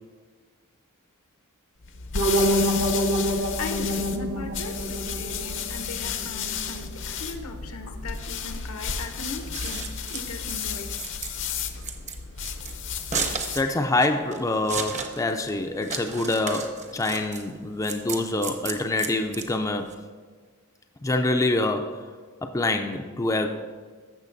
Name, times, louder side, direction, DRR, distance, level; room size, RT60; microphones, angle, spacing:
sound 1, 1.8-13.7, left 6 dB, 55° left, 0.7 m, -33 dB
sound 2, 2.1-7.1, equal, 65° right, 1.0 m, -27 dB
voice 1, 3.6-9.8 10.1-10.9, left 2 dB, 80° left, 5 dB, 0.9 m, -38 dB
Scissors, 9.3-19.9, right 5 dB, 30° right, 0.7 m, -34 dB
voice 2, 13.5-20.0 21.0-22.1 22.4-23.5, left 2 dB, 15° left, 5 dB, 0.4 m, -26 dB
14.5 x 6.4 x 2.6 m, 1.5 s
head